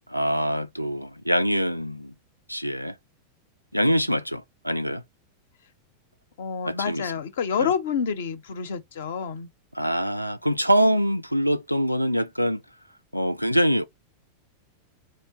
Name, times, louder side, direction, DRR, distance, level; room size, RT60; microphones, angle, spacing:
voice 1, 0.1-2.1 2.5-2.9 3.7-5.0 6.6-7.1 7.6-7.7 9.7-12.6 13.1-13.8, equal, 90° right, 0.3 m, -24 dB
voice 2, 6.4-9.5, left 7 dB, 60° left, 0.6 m, -28 dB
2.8 x 2.1 x 3.9 m
figure-of-eight pair, 90°, 0 cm